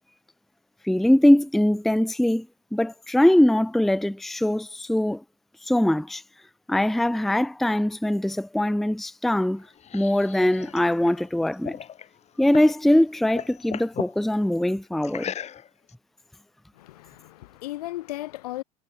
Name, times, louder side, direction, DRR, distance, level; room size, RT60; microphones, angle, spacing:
voice 1, 0.8-2.5 2.7-5.2 5.7-6.2 6.7-9.7 9.9-11.8 12.4-15.3, left 1 dB, ahead, 0.6 m, -22 dB
sound 1, 9.4-12.8 13.1-14.2 15.0-15.9, left 9 dB, 35° left, 3.4 m, -37 dB
voice 2, 16.7-18.6, left 17 dB, 85° left, 3.3 m, -36 dB
supercardioid pair, 110°, 19 cm